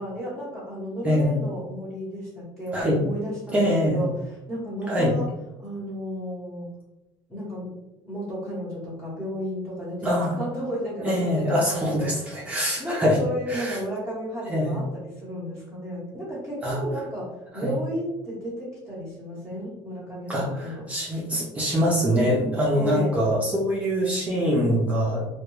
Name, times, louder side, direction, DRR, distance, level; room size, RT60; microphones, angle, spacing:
voice 1, 0.0-5.3 5.6-6.7 7.3-7.8 8.0-12.4 12.8-20.9 22.7-23.1, equal, 10° left, -11 dB, 0.8 m, -33 dB
voice 2, 1.0-1.4 2.7-3.0 3.5-4.1 4.9-5.1 10.0-10.3 11.0-13.2 13.5-13.8 14.5-14.8 16.6-16.8 17.5-17.7 20.3-25.3, equal, 15° right, -5 dB, 0.4 m, -24 dB
2.2 x 2.1 x 3.0 m, 0.97 s
cardioid pair, 140°, 10 cm